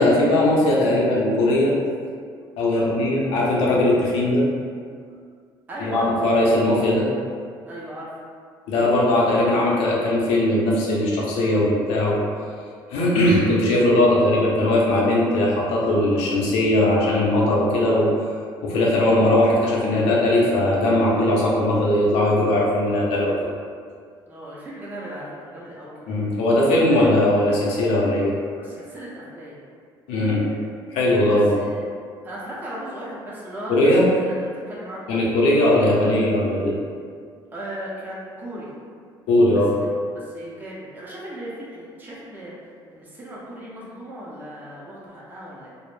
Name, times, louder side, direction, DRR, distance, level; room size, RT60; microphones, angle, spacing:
voice 1, 0.0-1.7 2.6-4.5 5.8-7.1 8.7-12.3 12.9-18.1 18.6-23.4 26.1-28.7 30.1-30.6 30.9-31.6 33.7-34.1 35.1-36.8 39.3-39.7, left 1 dB, 90° left, -4 dB, 0.6 m, -19 dB
voice 2, 2.7-3.0 5.7-6.2 7.7-8.1 14.1-14.3 24.3-26.2 28.6-29.6 31.6-31.9 32.2-34.4 34.7-35.2 37.5-38.7 39.8-42.5 42.9-45.7, right 1 dB, 20° right, -6 dB, 0.5 m, -36 dB
2.0 x 2.0 x 3.0 m, 2.1 s
cardioid pair, 95°, 10 cm